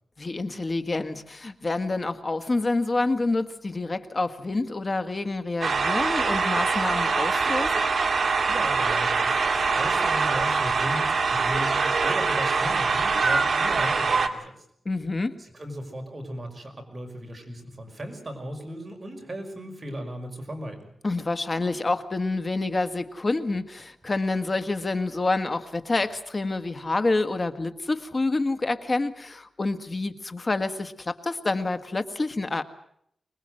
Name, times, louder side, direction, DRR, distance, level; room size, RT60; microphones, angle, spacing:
voice 1, 0.2-7.8 14.8-15.4 21.0-32.6, left 2 dB, 35° left, 9 dB, 1.7 m, -28 dB
sound 1, 5.6-14.3, right 4 dB, 55° right, 2.2 m, -24 dB
voice 2, 8.5-14.5 15.4-20.9, equal, 30° right, 3 dB, 5.6 m, -36 dB
25.0 x 20.5 x 7.8 m, 0.69 s
wide cardioid pair, 105°, 0 cm